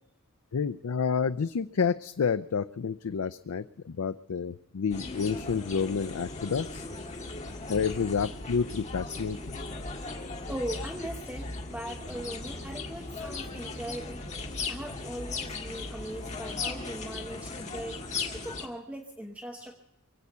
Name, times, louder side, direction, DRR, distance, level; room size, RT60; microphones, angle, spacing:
voice 1, 0.5-6.8 7.7-9.6, left 6 dB, 85° left, 12 dB, 0.5 m, -29 dB
sound 1, 4.9-18.7, left 3 dB, 35° left, 1.8 m, -37 dB
voice 2, 10.5-14.2 14.7-19.8, right 1 dB, 5° right, 2 dB, 1.0 m, -40 dB
23.5 x 8.5 x 6.8 m, 0.84 s
head